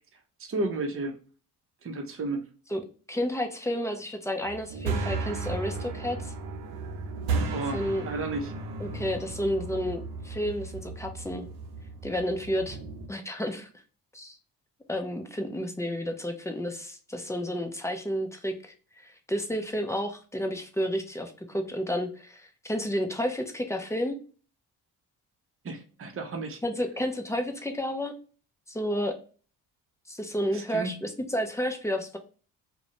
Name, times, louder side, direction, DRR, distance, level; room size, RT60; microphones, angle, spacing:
voice 1, 0.4-1.2 1.8-2.4 7.5-8.5 25.6-26.6 30.5-31.0, right 2 dB, 35° right, 4 dB, 0.7 m, -32 dB
voice 2, 3.1-6.3 7.7-8.0 8.8-11.5 12.0-12.8 13.1-13.7 14.1-14.4 14.9-24.2 26.6-28.1 28.7-29.1 30.1-32.2, equal, 10° left, 5 dB, 0.5 m, -31 dB
sound 1, 4.4-13.1, right 4 dB, 80° right, 0.6 m, -34 dB
2.4 x 2.1 x 2.9 m, 0.38 s
supercardioid pair, 65°, 38 cm